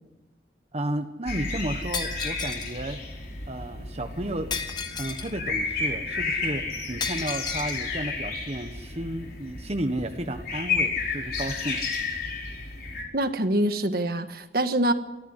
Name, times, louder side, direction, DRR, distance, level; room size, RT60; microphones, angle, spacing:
voice 1, 0.7-3.0 3.5-4.5 5.0-11.8, right 1 dB, 35° right, 5 dB, 1.3 m, -32 dB
sound 1, 1.3-13.0, left 4 dB, 55° left, 4.8 m, -32 dB
Shatter, 1.9-2.7 4.5-5.4 7.0-7.8, left 5 dB, 25° left, 1.5 m, -33 dB
voice 2, 13.1-14.9, right 1 dB, 55° right, 8 dB, 1.7 m, -25 dB
23.0 x 14.5 x 9.8 m, 1.1 s
head